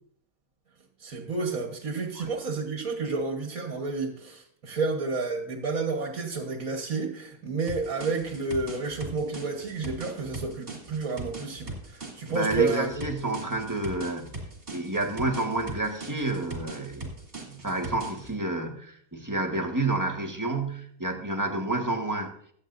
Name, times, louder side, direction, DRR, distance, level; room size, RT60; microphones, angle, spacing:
voice 1, 1.0-13.1, right 4 dB, 70° right, 3 dB, 1.8 m, -30 dB
sound 1, 7.7-18.3, right 2 dB, 40° right, 2.8 m, -40 dB
voice 2, 12.3-14.3 14.7-17.1 17.5-22.3, right 2 dB, 15° right, 1 dB, 1.3 m, -29 dB
23.5 x 8.2 x 2.6 m, 0.64 s
omnidirectional pair, 1.5 m